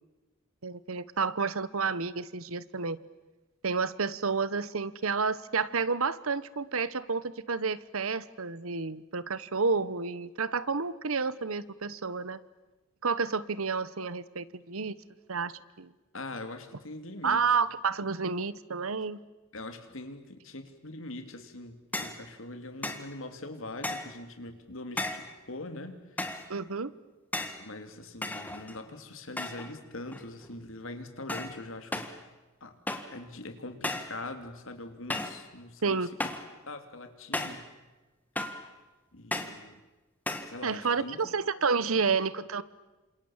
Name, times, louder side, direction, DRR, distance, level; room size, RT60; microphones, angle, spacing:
voice 1, 0.6-3.0 3.6-12.4 13.0-15.0 15.3-15.9 17.2-19.2 26.5-26.9 35.8-36.1 40.6-42.6, right 5 dB, 80° right, 17 dB, 1.1 m, -30 dB
voice 2, 16.1-17.4 19.5-26.0 27.5-32.1 32.6-32.7 33.1-36.1 36.7-37.7 39.1-39.8 40.5-41.3, left 2 dB, 65° left, 7 dB, 3.0 m, -42 dB
sound 1, 21.9-22.2 22.8-23.1 23.8-24.2 25.0-25.3 26.2-26.5 27.3-27.6 28.2-28.9 29.4-29.8 30.1-30.5 31.3-31.6 31.9-32.2 32.9-33.2 33.8-34.2 35.1-35.4 36.2-36.5 37.3-37.7 38.4-38.7 39.3-39.6 40.3-40.6, left 2 dB, 10° left, 1.6 m, -35 dB
29.0 x 26.5 x 7.4 m, 1.1 s
head